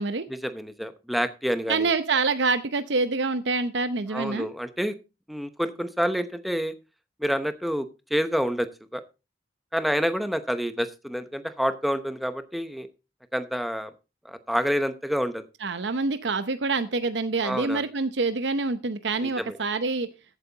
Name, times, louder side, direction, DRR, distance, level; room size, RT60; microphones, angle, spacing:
voice 1, 0.3-1.9 4.1-5.0 5.3-6.7 7.2-9.0 9.7-12.9 13.3-13.9 14.2-15.5 17.4-17.8 19.2-19.6, equal, ahead, 10 dB, 0.8 m, -28 dB
voice 2, 1.7-4.5 15.6-20.1, right 3 dB, 75° right, 11 dB, 0.8 m, -26 dB
14.5 x 8.4 x 3.9 m, 0.30 s
head